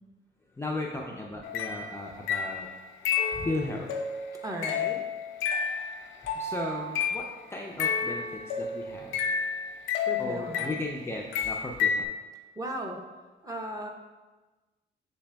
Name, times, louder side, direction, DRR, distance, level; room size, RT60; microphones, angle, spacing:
voice 1, 0.6-2.7 3.3-3.9 6.3-9.2 10.2-12.1, left 2 dB, 15° left, -1 dB, 0.4 m, -35 dB
sound 1, 1.4-7.3 7.8-11.0 11.3-12.0, left 6 dB, 85° left, 0.5 m, -31 dB
voice 2, 4.4-5.0 10.1-10.8 12.6-13.0 13.4-13.9, right 1 dB, 15° right, 1 dB, 0.7 m, -36 dB
7.0 x 3.3 x 2.2 m, 1.2 s
cardioid pair, 90°, 20 cm